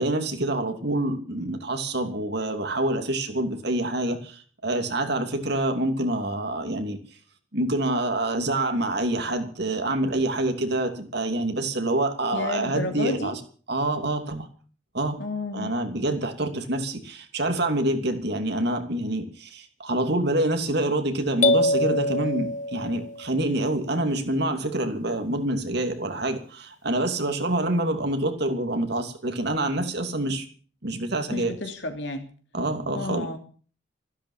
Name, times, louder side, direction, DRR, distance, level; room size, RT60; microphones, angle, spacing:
voice 1, 0.0-7.0 7.5-13.4 13.7-14.5 14.9-15.2 15.5-30.5 30.8-31.5 32.5-33.3, right 1 dB, 60° right, 6 dB, 2.8 m, -26 dB
voice 2, 12.3-13.4 15.2-15.7 31.3-32.3 32.9-33.4, left 2 dB, 65° left, 5 dB, 3.0 m, -31 dB
sound 1, 21.4-23.3, left 1 dB, 40° left, 1.0 m, -24 dB
14.5 x 12.5 x 7.3 m, 0.43 s
head